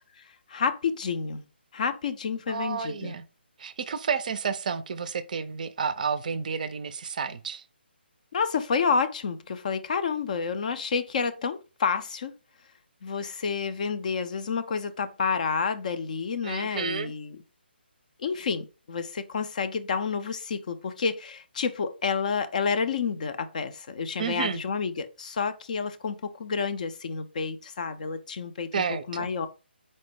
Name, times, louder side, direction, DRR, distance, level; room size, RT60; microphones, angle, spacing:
voice 1, 0.5-1.4 1.7-3.2 8.3-12.3 13.0-17.4 18.2-29.5, left 5 dB, 45° left, 0.4 m, -29 dB
voice 2, 2.5-3.2 3.6-7.6 16.4-17.1 24.2-24.6 28.7-29.3, right 6 dB, 45° right, 0.4 m, -31 dB
4.2 x 2.0 x 4.5 m
figure-of-eight pair, 145°, 6 cm